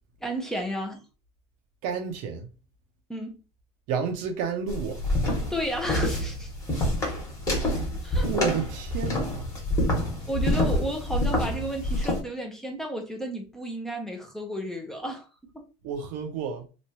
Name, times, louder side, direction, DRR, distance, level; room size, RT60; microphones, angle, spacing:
voice 1, 0.2-1.0 3.1-3.4 5.5-6.5 7.9-8.3 10.2-15.3 15.5-15.7, equal, 5° left, 0.7 m, -32 dB
voice 2, 1.8-2.5 3.9-5.0 8.2-9.5 15.8-16.7, right 6 dB, 70° right, 0.8 m, -30 dB
sound 1, 4.7-12.2, left 1 dB, 20° left, 1.4 m, -27 dB
3.0 x 2.5 x 3.0 m
supercardioid pair, 125°, 15 cm